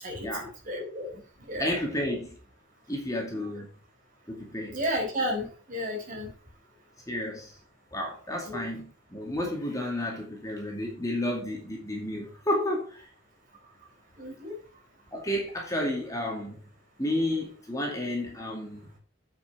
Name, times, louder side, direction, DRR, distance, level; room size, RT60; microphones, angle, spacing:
voice 1, 0.0-1.2 1.5-1.7 3.3-3.5 4.7-6.3 8.4-8.6 14.2-14.5, equal, 40° right, 4.3 m, -33 dB
voice 2, 1.6-2.4 2.9-3.7 4.3-4.8 7.1-7.5 7.9-13.0 15.1-16.6 17.0-18.9, left 1 dB, 15° left, 2.4 m, -31 dB
8.7 x 6.1 x 6.0 m
head